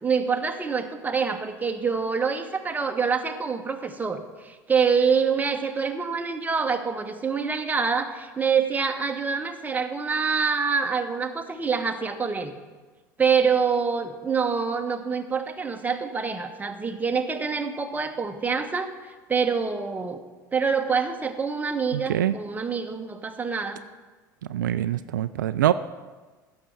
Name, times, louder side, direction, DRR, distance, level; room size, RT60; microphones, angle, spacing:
voice 1, 0.0-12.6 13.2-20.2 20.5-23.8, right 5 dB, 15° right, 5 dB, 1.2 m, -26 dB
voice 2, 21.9-22.3 24.5-25.7, right 12 dB, 75° right, 13 dB, 0.4 m, -24 dB
15.5 x 6.6 x 6.0 m, 1.3 s
figure-of-eight pair, 70°, 10 cm